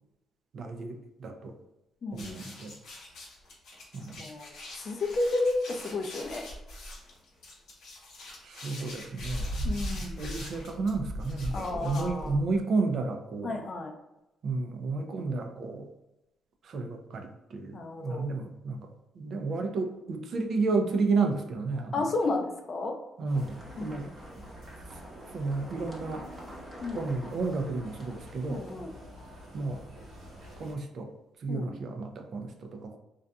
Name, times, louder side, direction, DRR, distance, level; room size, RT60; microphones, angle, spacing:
voice 1, 0.5-1.5 2.1-2.7 3.9-4.2 8.4-9.8 10.2-13.6 14.4-15.9 16.6-18.9 19.1-22.0 23.2-24.1 25.3-26.2 26.9-28.6 29.5-29.8 30.6-31.1 31.4-33.0, right 3 dB, 60° right, 4 dB, 0.4 m, -32 dB
voice 2, 2.0-2.5 4.2-6.4 9.6-10.2 11.5-12.4 13.4-13.9 17.7-18.2 21.9-22.9 23.8-24.1 26.8-27.1 28.5-28.9 31.5-31.7, left 2 dB, 45° left, 3 dB, 0.4 m, -32 dB
sound 1, 2.1-12.6, equal, 80° left, 0.9 m, -39 dB
sound 2, 23.3-28.8, right 1 dB, 30° right, 0.8 m, -48 dB
sound 3, 23.3-30.7, left 1 dB, 85° right, 0.9 m, -48 dB
2.6 x 2.3 x 2.2 m, 0.95 s
cardioid pair, 90°, 0 cm